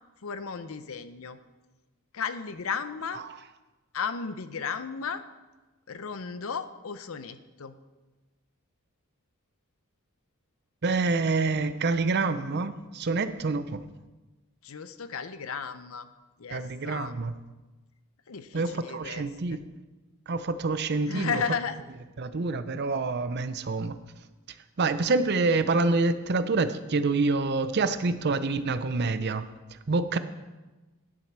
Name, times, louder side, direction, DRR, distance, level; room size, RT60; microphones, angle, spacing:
voice 1, 0.2-1.4 2.1-3.2 3.9-5.2 5.9-7.8 14.6-16.1 16.4-17.1 18.3-19.6 21.1-21.8, left 6 dB, 70° left, 12 dB, 0.6 m, -34 dB
voice 2, 10.8-13.8 16.5-17.3 18.5-19.6 20.3-21.4 22.2-24.0 24.8-30.2, right 3 dB, 50° right, 12 dB, 0.6 m, -27 dB
10.5 x 7.4 x 6.0 m, 1.2 s
head